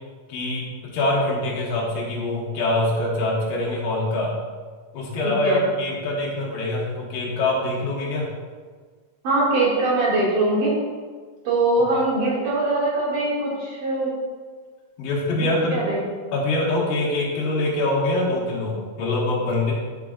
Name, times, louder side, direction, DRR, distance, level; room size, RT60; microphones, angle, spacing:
voice 1, 0.3-4.3 4.9-8.3 15.0-15.8 16.3-19.7, left 2 dB, 85° left, -3 dB, 3.2 m, -24 dB
voice 2, 5.2-5.6 9.2-10.7 11.5-14.1 15.3-16.0, right 2 dB, 70° right, -7 dB, 3.8 m, -22 dB
10.5 x 5.8 x 2.4 m, 1.5 s
omnidirectional pair, 3.8 m